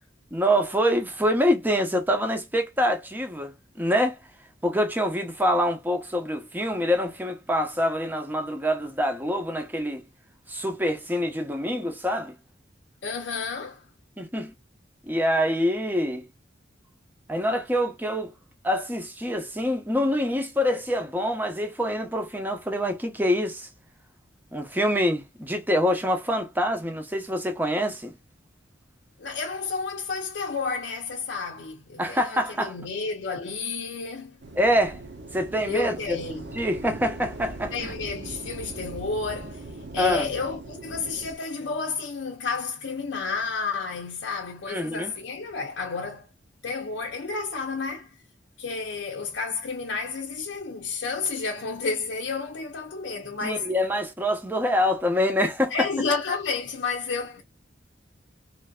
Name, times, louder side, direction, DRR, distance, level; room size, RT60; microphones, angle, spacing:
voice 1, 0.3-4.2 4.6-10.0 10.5-12.3 14.2-14.5 15.1-16.3 17.3-18.3 18.6-23.7 24.5-28.1 32.0-32.8 34.6-35.0 35.3-36.2 36.5-37.9 40.0-40.3 44.7-45.1 53.4-55.7, equal, 10° right, 0.7 m, -25 dB
voice 2, 13.0-13.8 29.2-34.4 35.7-36.6 37.7-39.7 39.9-46.3 46.6-48.1 48.6-53.7 55.7-57.4, left 4 dB, 70° left, 0.6 m, -31 dB
sound 1, 34.4-41.4, right 2 dB, 60° right, 0.8 m, -40 dB
3.2 x 2.6 x 2.3 m
head